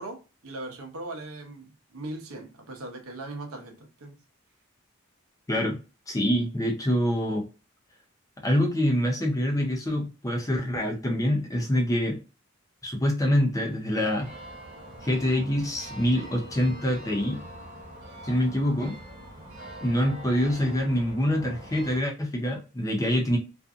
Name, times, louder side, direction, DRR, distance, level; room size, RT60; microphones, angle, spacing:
voice 1, 0.0-4.2, right 2 dB, 75° right, 0.7 m, -39 dB
voice 2, 6.1-7.5 8.4-12.2 12.8-14.3 15.0-17.4 18.2-19.0 19.8-23.4, equal, 15° left, 0.5 m, -25 dB
sound 1, 14.1-22.0, right 1 dB, 40° right, 1.0 m, -44 dB
2.6 x 2.5 x 2.4 m
head